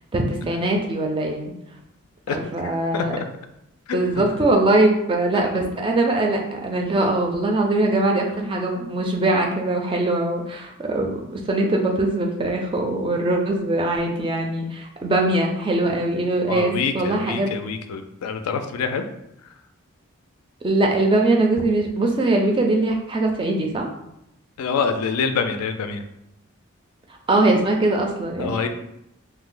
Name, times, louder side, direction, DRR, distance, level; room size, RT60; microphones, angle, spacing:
voice 1, 0.1-1.5 2.3-3.1 3.9-17.5 20.6-23.9 27.3-28.7, right 2 dB, 25° right, 1 dB, 0.3 m, -21 dB
voice 2, 2.3-3.3 3.9-4.0 16.5-19.1 24.6-26.0 28.4-28.7, left 5 dB, 90° left, 7 dB, 0.3 m, -26 dB
2.6 x 2.0 x 3.7 m, 0.82 s
head